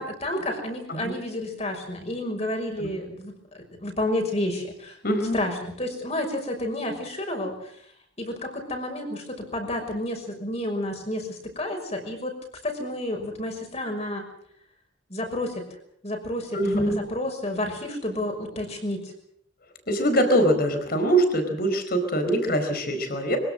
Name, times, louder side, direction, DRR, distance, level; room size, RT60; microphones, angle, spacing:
voice 1, 0.0-5.0 5.3-7.7 8.2-12.4 12.6-14.2 15.1-15.6 16.0-19.1, left 1 dB, 35° left, 3 dB, 6.0 m, -30 dB
voice 2, 5.0-5.3 16.5-17.0 19.9-23.4, right 1 dB, 50° left, 7 dB, 4.6 m, -23 dB
24.5 x 17.0 x 7.8 m, 0.67 s
head